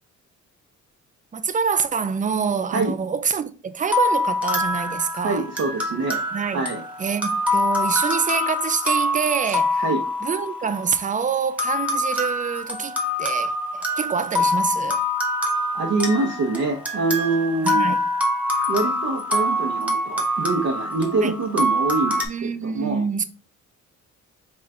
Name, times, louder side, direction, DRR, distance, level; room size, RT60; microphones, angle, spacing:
voice 1, 1.3-5.5 6.3-6.7 7.0-9.8 10.2-15.0 17.6-18.1 21.2-21.3 22.3-23.2, right 6 dB, 25° right, 0.5 m, -26 dB
sound 1, 3.9-11.0 11.6-22.3, left 1 dB, 5° right, 1.3 m, -25 dB
voice 2, 5.2-6.2 6.5-6.8 9.8-10.0 15.7-18.0 18.7-23.0, right 3 dB, 55° right, 0.9 m, -25 dB
4.5 x 2.4 x 4.2 m
cardioid pair, 90°, 30 cm